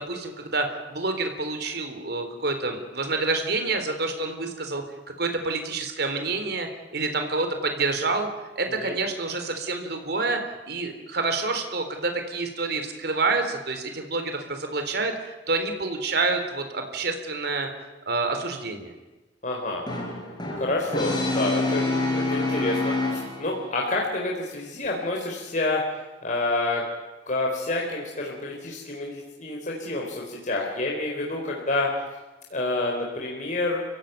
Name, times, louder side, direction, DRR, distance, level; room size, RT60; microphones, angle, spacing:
voice 1, 0.0-4.8 5.2-8.3 8.6-10.4 10.7-17.7 18.1-18.9, right 3 dB, 65° right, 6 dB, 3.9 m, -28 dB
voice 2, 19.4-19.8 20.5-21.9 22.1-25.8 26.2-26.8 27.3-31.9 32.5-33.8, left 2 dB, 45° left, -2 dB, 4.3 m, -28 dB
Brass instrument, 19.9-23.7, left 2 dB, 25° left, 5.4 m, -27 dB
30.0 x 16.5 x 9.4 m, 1.1 s
head